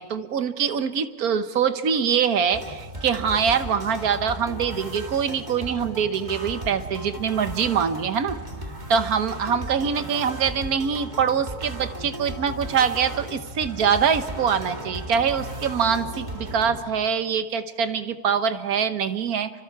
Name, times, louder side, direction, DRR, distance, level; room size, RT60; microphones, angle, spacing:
voice 1, 0.0-8.4 8.9-19.5, right 7 dB, 70° right, 10 dB, 1.5 m, -24 dB
sound 1, 2.5-16.8, right 1 dB, 30° right, 2.2 m, -36 dB
28.5 x 25.0 x 4.7 m, 1.3 s
omnidirectional pair, 1.6 m